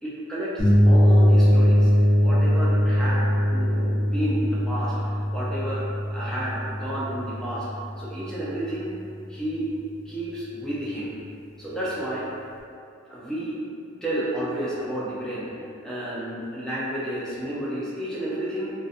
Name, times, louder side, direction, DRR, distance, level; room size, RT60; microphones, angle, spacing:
voice 1, 0.0-7.7 8.0-8.9 9.3-9.7 10.0-11.1 11.6-12.3 13.1-13.6 14.0-15.5 15.8-18.7, right 1 dB, 5° left, -9 dB, 0.5 m, -31 dB
sound 1, 0.6-8.3, equal, 80° left, 0.8 m, -21 dB
2.6 x 2.2 x 2.5 m, 2.4 s
head